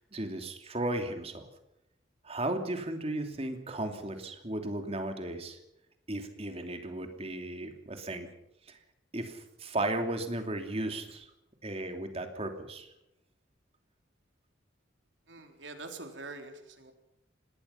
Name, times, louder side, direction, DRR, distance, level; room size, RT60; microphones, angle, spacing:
voice 1, 0.0-1.5 2.2-5.6 6.1-8.3 8.7-8.8 9.1-11.3 11.6-12.9, right 1 dB, 30° right, 5 dB, 2.9 m, -35 dB
voice 2, 15.3-16.9, right 3 dB, 75° right, 5 dB, 3.9 m, -44 dB
26.0 x 20.0 x 5.8 m, 0.85 s
head